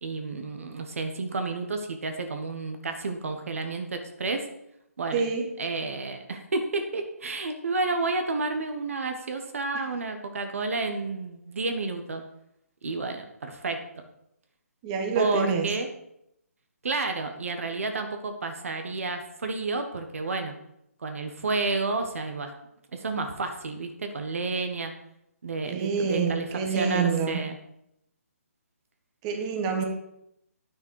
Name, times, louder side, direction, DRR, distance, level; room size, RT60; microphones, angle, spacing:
voice 1, 0.0-4.5 5.0-5.2 5.6-12.2 12.8-13.8 15.1-15.9 16.8-20.6 21.0-22.5 22.9-24.9 25.4-27.6, right 3 dB, 60° right, 6 dB, 1.3 m, -31 dB
voice 2, 5.1-5.5 14.8-15.7 25.7-27.4 29.2-29.8, right 5 dB, 25° right, 2 dB, 1.3 m, -27 dB
10.0 x 6.4 x 4.7 m, 0.78 s
figure-of-eight pair, 145°, 8 cm